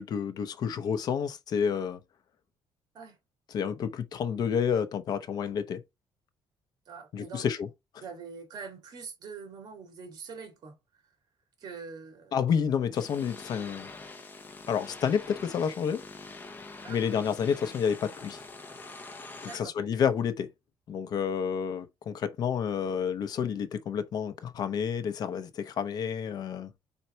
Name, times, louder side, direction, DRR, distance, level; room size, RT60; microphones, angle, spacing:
voice 1, 0.0-2.0 3.5-5.8 7.1-7.7 12.3-13.9 14.7-16.0 16.9-18.4 19.4-20.5 20.9-26.7, left 7 dB, 50° left, 0.8 m, -29 dB
voice 2, 6.9-7.4 8.0-10.8 11.6-12.4 16.8-17.0 19.4-19.7, right 5 dB, 50° right, 2.3 m, -44 dB
sound 1, 12.9-19.6, left 3 dB, 20° left, 0.9 m, -45 dB
4.4 x 4.1 x 5.6 m
cardioid pair, 155°, 9 cm